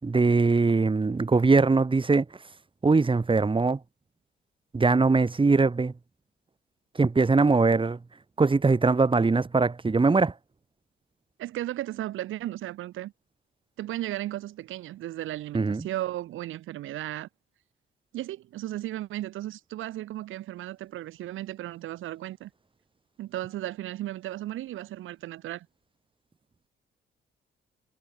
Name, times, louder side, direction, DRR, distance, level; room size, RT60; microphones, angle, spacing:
voice 1, 0.0-2.2 2.8-3.8 4.7-5.9 7.0-8.0 8.4-10.3 15.5-15.9, right 3 dB, 25° right, 6.4 m, -21 dB
voice 2, 11.4-13.1 13.8-17.3 18.1-22.5 23.2-25.7, right 14 dB, 85° right, 5.8 m, -35 dB
cardioid pair, 90°, 20 cm